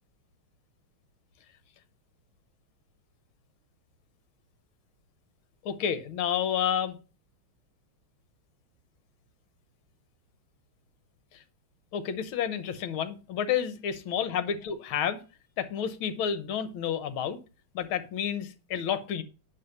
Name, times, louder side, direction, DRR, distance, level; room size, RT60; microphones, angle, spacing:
voice 1, 5.6-7.0 11.3-11.4 11.9-15.2 15.6-17.4 17.7-19.2, left 8 dB, 70° left, 12 dB, 1.7 m, -30 dB
10.5 x 3.5 x 7.0 m, 0.32 s
omnidirectional pair, 2.4 m